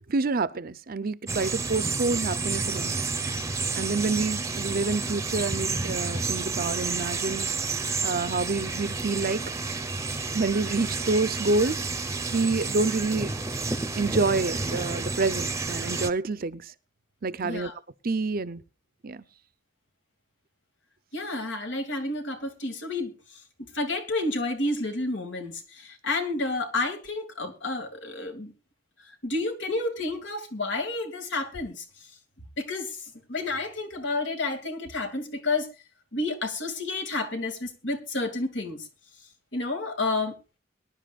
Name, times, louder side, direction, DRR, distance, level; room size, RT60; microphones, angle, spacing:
voice 1, 0.1-2.9 3.8-7.5 8.0-9.4 10.3-11.8 12.3-13.3 14.0-16.7 17.2-17.7 18.0-18.6 19.0-19.2, right 3 dB, 50° right, 0.7 m, -27 dB
sound 1, 1.3-16.1, right 3 dB, 15° right, 0.8 m, -30 dB
voice 2, 17.4-17.7 21.1-23.4 23.7-28.5 29.0-31.8 32.6-35.7 36.1-38.9 39.5-40.4, left 2 dB, 70° left, 2.5 m, -30 dB
22.5 x 10.5 x 2.4 m
head